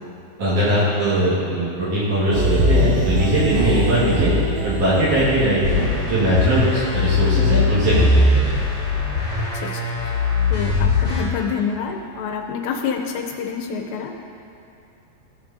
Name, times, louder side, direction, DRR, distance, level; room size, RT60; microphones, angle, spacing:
voice 1, 0.4-4.3 4.6-8.5, right 1 dB, 55° right, -10 dB, 2.9 m, -20 dB
sound 1, 2.3-10.2 10.6-10.8, left 1 dB, 75° right, 2.3 m, -25 dB
sound 2, 5.6-11.2, left 3 dB, 35° left, 1.1 m, -20 dB
voice 2, 9.6-10.2 10.5-14.1, left 6 dB, 80° left, 3 dB, 2.8 m, -27 dB
15.5 x 6.0 x 2.7 m, 2.8 s
omnidirectional pair, 5.0 m